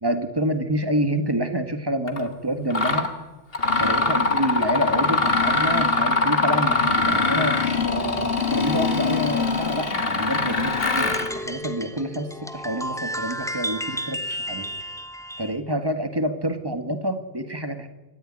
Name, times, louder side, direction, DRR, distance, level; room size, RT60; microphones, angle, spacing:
voice 1, 0.0-3.1 3.8-14.7 15.4-17.9, right 1 dB, 20° right, 8 dB, 1.8 m, -27 dB
Mechanisms, 2.1-2.2 2.7-3.1 3.5-11.3, left 3 dB, 65° left, 2.1 m, -22 dB
sound 1, 10.8-15.6, equal, 5° left, 1.1 m, -32 dB
26.0 x 14.5 x 10.0 m, 1.2 s
omnidirectional pair, 1.1 m